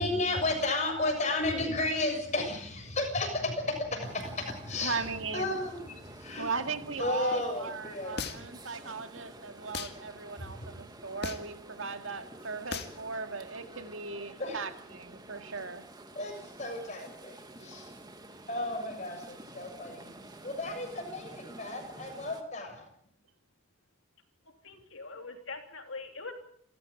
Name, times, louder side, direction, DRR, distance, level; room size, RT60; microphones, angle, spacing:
voice 1, 0.0-6.5 7.0-8.1 10.4-10.7 14.4-14.6 16.2-17.9 18.5-20.1 20.4-22.8, left 2 dB, 35° left, 7.0 m, -33 dB
sound 1, 4.0-22.4, right 1 dB, 20° right, 2.0 m, -49 dB
voice 2, 4.7-5.6 6.4-15.8, right 4 dB, 70° right, 2.1 m, -38 dB
sound 2, 8.2-8.6 9.7-10.0 11.2-11.6 12.7-13.0, left 4 dB, 50° left, 2.2 m, -36 dB
voice 3, 24.6-26.3, left 3 dB, 65° left, 3.3 m, -42 dB
28.5 x 14.5 x 8.7 m
head